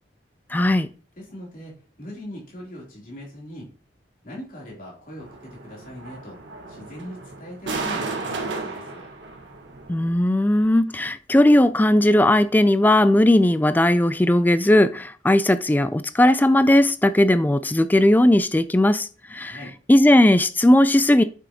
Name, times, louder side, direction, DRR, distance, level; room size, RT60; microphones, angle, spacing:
voice 1, 0.5-0.9 9.9-19.6 19.9-21.2, left 1 dB, 10° left, 0.3 m, -17 dB
voice 2, 1.2-3.7 4.2-6.4 6.7-9.1 19.4-19.8, equal, 45° left, 3.3 m, -40 dB
sound 1, 5.2-10.2, right 3 dB, 90° right, 1.6 m, -34 dB
8.1 x 6.2 x 2.9 m
head